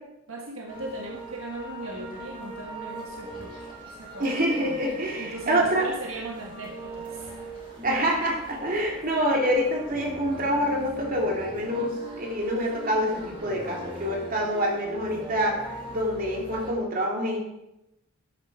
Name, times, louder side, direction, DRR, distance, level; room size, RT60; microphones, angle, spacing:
voice 1, 0.3-7.3, right 2 dB, 70° right, 1 dB, 1.4 m, -39 dB
sound 1, 0.7-16.7, right 2 dB, 25° right, 2.6 m, -40 dB
voice 2, 4.2-5.9 7.8-17.4, equal, 40° right, -1 dB, 2.7 m, -26 dB
13.0 x 9.0 x 4.8 m, 0.91 s
head